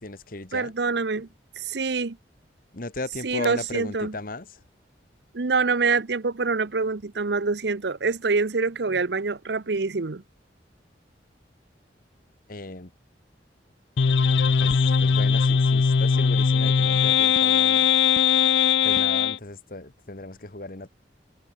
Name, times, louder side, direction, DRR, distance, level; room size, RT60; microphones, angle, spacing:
voice 1, 0.0-0.7 2.7-4.6 12.5-12.9 14.6-17.9 18.8-20.9, left 2 dB, 50° left, 1.6 m, -36 dB
voice 2, 0.5-1.3 1.6-2.2 3.2-4.1 5.3-10.2, right 4 dB, 65° right, 0.8 m, -25 dB
sound 1, 14.0-19.4, left 6 dB, 75° left, 0.5 m, -20 dB
head